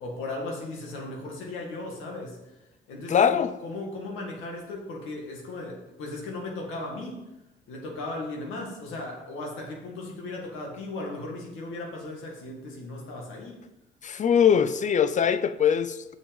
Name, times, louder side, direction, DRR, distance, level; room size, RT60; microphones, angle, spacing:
voice 1, 0.0-2.4 2.9-7.2 7.7-13.6, left 2 dB, 90° left, 0 dB, 2.0 m, -36 dB
voice 2, 3.1-3.5 14.0-16.1, left 8 dB, 40° left, 13 dB, 0.5 m, -22 dB
6.4 x 5.9 x 5.2 m, 0.96 s
cardioid pair, 90°, 20 cm